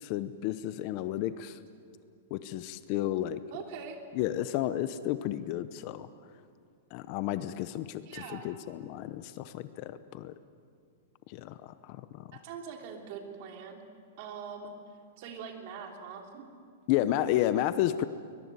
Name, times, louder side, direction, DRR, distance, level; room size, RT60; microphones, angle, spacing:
voice 1, 0.0-1.6 2.3-3.4 4.1-6.1 6.9-10.3 11.3-12.3 16.9-18.0, left 13 dB, 35° left, 13 dB, 0.8 m, -32 dB
voice 2, 3.5-4.0 8.0-8.5 12.3-13.8 14.2-14.7 15.2-16.5, right 6 dB, 40° right, 3 dB, 3.2 m, -43 dB
22.0 x 22.0 x 9.7 m, 2.2 s
supercardioid pair, 170°, 0 cm